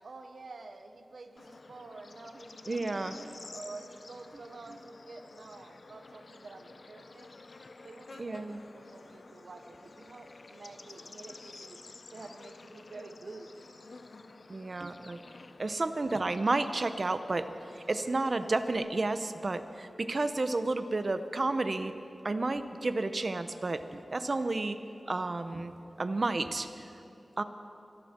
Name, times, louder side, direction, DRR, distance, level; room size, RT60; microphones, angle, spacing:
voice 1, 0.0-7.3 7.8-11.8 12.1-13.5, right 3 dB, 75° right, 7 dB, 1.0 m, -49 dB
Bird / Insect, 1.4-18.8, left 3 dB, 60° left, 0.7 m, -51 dB
voice 2, 2.7-3.4 8.2-8.6 14.5-15.2 15.6-17.5 17.7-21.9 22.2-24.8 25.0-25.7 26.0-26.9 27.4-27.5, right 2 dB, 50° right, 10 dB, 0.8 m, -31 dB
25.5 x 12.0 x 4.5 m, 2.9 s
wide cardioid pair, 80°, 0 cm